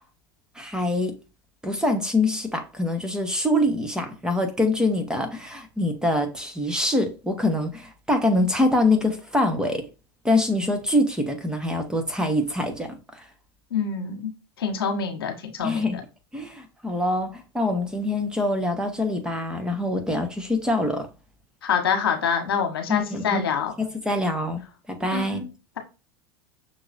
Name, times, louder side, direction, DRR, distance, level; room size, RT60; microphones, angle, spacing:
voice 1, 0.5-1.1 1.6-9.9 10.2-13.2 15.6-16.0 16.3-21.1 22.9-23.5 23.8-24.6 24.9-25.4, left 1 dB, 5° right, 1.1 m, -24 dB
voice 2, 13.7-14.3 14.6-15.8 21.6-23.7 25.1-25.4, left 7 dB, 75° left, 1.2 m, -26 dB
6.3 x 3.0 x 2.5 m
hypercardioid pair, 85°, 12 cm